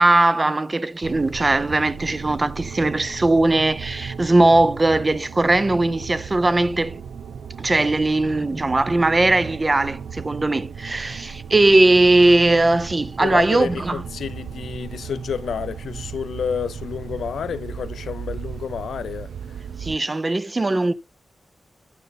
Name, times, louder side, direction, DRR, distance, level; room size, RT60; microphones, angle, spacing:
voice 1, 0.0-7.0 7.6-14.0 19.8-20.9, right 2 dB, 30° right, 0.6 m, -19 dB
sound 1, 1.0-20.0, right 7 dB, 90° right, 0.5 m, -36 dB
voice 2, 13.2-19.6, left 7 dB, 90° left, 0.5 m, -30 dB
9.5 x 6.5 x 3.9 m
cardioid pair, 80°, 0 cm